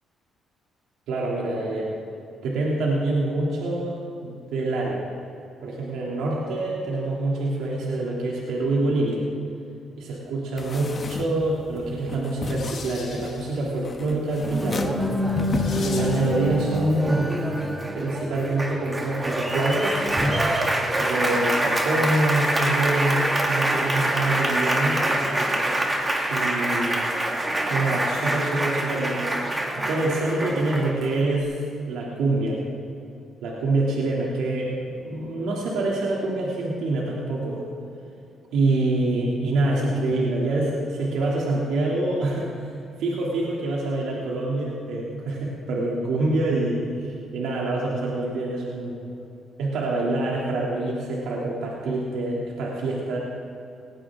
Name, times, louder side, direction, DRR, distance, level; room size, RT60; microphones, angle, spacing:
voice 1, 1.1-2.0 2.4-5.0 5.6-9.2 10.0-15.0 15.7-17.4 17.9-20.1 21.0-25.0 26.3-27.1 27.7-29.3 29.9-32.6 33.4-37.6 38.5-49.1 49.6-53.2, right 2 dB, 85° right, -4 dB, 2.8 m, -26 dB
sound 1, 10.6-16.7, left 3 dB, 35° left, 1.2 m, -34 dB
sound 2, 12.5-16.4, left 5 dB, 60° left, 3.8 m, -43 dB
Applause, 14.4-31.4, right 1 dB, 20° right, 2.5 m, -25 dB
19.0 x 18.0 x 3.7 m, 2.7 s
cardioid pair, 90°, 0 cm